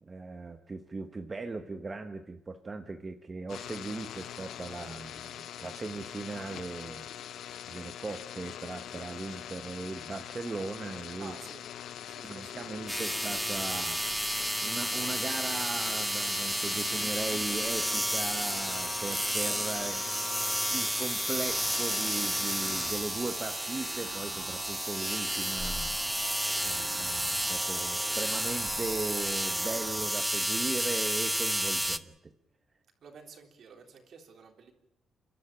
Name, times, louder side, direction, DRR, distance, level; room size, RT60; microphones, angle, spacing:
voice 1, 0.0-11.3 12.2-14.0 14.6-20.0 20.7-25.9 26.6-32.3, right 3 dB, 25° right, 7 dB, 1.1 m, -38 dB
sound 1, 3.5-23.0, left 10 dB, 75° left, 0.9 m, -43 dB
voice 2, 11.2-11.7 12.1-13.1 33.0-34.7, right 6 dB, 55° right, 4 dB, 3.6 m, -51 dB
sound 2, 12.9-32.0, equal, 5° right, 0.9 m, -31 dB
sound 3, 21.5-30.0, right 8 dB, 80° right, 2.4 m, -45 dB
29.5 x 12.5 x 8.9 m, 0.87 s
cardioid pair, 130°, 0 cm